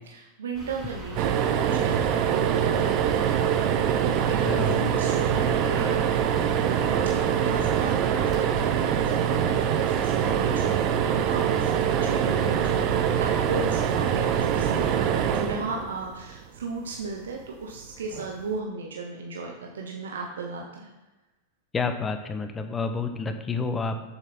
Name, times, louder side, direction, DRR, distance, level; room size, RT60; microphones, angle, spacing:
voice 1, 0.1-6.2 7.2-20.9, right 3 dB, 90° right, 1 dB, 0.9 m, -36 dB
sound 1, 0.5-15.0, right 1 dB, 25° right, 2.4 m, -39 dB
sound 2, 1.2-16.4 18.1-18.3 18.6-18.7, right 9 dB, 45° right, 0.7 m, -24 dB
voice 2, 4.5-4.9 21.7-24.0, left 4 dB, 20° left, 8 dB, 0.9 m, -29 dB
7.0 x 6.8 x 4.3 m, 1.1 s
hypercardioid pair, 120°, 0 cm